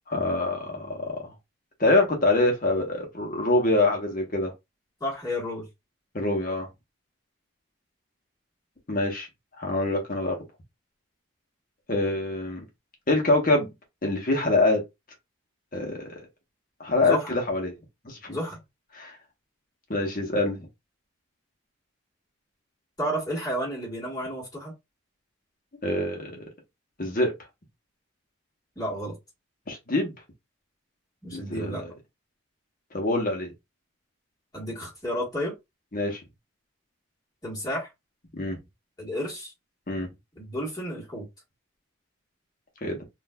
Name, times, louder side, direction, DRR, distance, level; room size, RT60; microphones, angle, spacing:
voice 1, 0.1-1.2 1.8-4.5 6.1-6.7 8.9-9.3 9.6-10.4 11.9-12.6 13.1-13.7 14.0-14.8 15.7-16.1 16.8-17.7 18.0-18.4 18.9-19.1 19.9-20.7 25.8-26.4 27.0-27.3 29.7-30.1 31.3-31.9 32.9-33.5 35.9-36.2 38.3-38.6 39.9-40.1 42.8-43.0, left 2 dB, 40° left, 1.0 m, -25 dB
voice 2, 5.0-5.7 17.0-17.3 18.3-18.6 23.0-24.7 28.7-29.2 31.2-31.8 34.5-35.5 37.4-37.9 39.0-39.5 40.4-41.3, equal, 20° left, 1.6 m, -31 dB
3.8 x 2.5 x 2.2 m
head